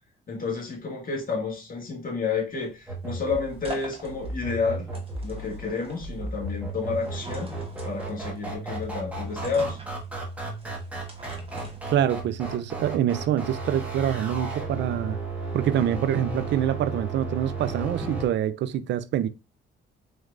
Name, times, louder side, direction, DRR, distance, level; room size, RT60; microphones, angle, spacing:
voice 1, 0.3-4.9 5.2-7.5 7.8-9.8, left 4 dB, 45° left, 1.6 m, -30 dB
sound 1, 2.5-12.4, right 1 dB, 30° right, 1.2 m, -45 dB
sound 2, 2.9-18.3, right 3 dB, 5° right, 1.3 m, -34 dB
voice 2, 11.9-15.2 15.5-19.3, right 10 dB, 65° right, 0.4 m, -26 dB
4.0 x 3.2 x 2.4 m
cardioid pair, 90°, 20 cm